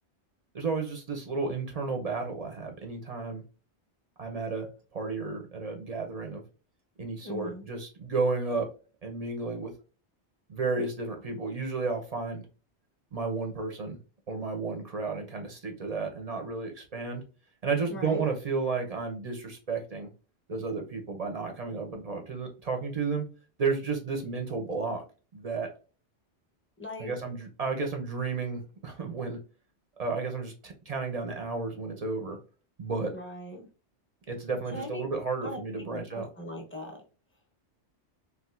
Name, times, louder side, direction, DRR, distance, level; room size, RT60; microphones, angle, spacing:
voice 1, 0.5-3.4 4.2-6.4 7.0-8.7 9.0-9.7 10.5-12.4 13.1-14.0 14.3-17.2 17.6-20.1 20.5-23.2 23.6-25.0 25.3-25.7 27.0-29.4 30.0-32.4 32.8-33.1 34.3-36.3, right 4 dB, 40° right, 3 dB, 0.6 m, -32 dB
voice 2, 7.2-7.6 17.9-18.2 26.8-27.1 33.1-33.7 34.7-35.0 35.4-35.6 35.9-36.9, left 1 dB, 15° left, 1 dB, 0.6 m, -40 dB
3.4 x 2.4 x 2.3 m, 0.35 s
omnidirectional pair, 1.2 m